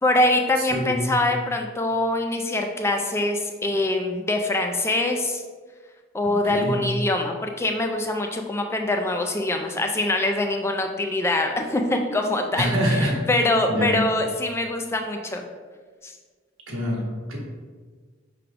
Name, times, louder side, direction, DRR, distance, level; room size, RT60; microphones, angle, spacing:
voice 1, 0.0-5.4 6.1-15.4 16.0-16.1, left 2 dB, 15° left, 4 dB, 0.3 m, -24 dB
voice 2, 0.6-1.0 6.2-6.8 12.6-13.3 13.7-14.0 16.7-17.4, equal, 85° right, -2 dB, 1.1 m, -25 dB
5.7 x 3.3 x 2.5 m, 1.5 s
head